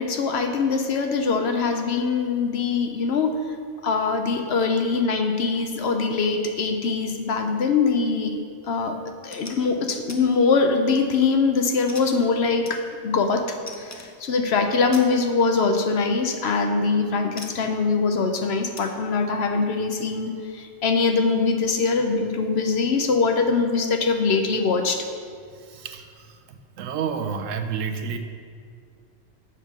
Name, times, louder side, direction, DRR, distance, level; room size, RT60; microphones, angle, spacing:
voice 1, 0.0-3.4 3.8-8.4 8.7-25.1, left 4 dB, 60° left, 5 dB, 0.8 m, -23 dB
sound 1, 9.3-9.6 10.1-10.2 10.7-11.1 11.9-13.2 13.7-14.2 14.9-15.1 16.4-16.6 17.4-17.7 18.7-19.0, left 2 dB, 20° left, 0.4 m, -41 dB
voice 2, 25.5-28.2, right 6 dB, 85° right, 7 dB, 1.0 m, -31 dB
7.3 x 5.3 x 6.0 m, 2.2 s
omnidirectional pair, 1.3 m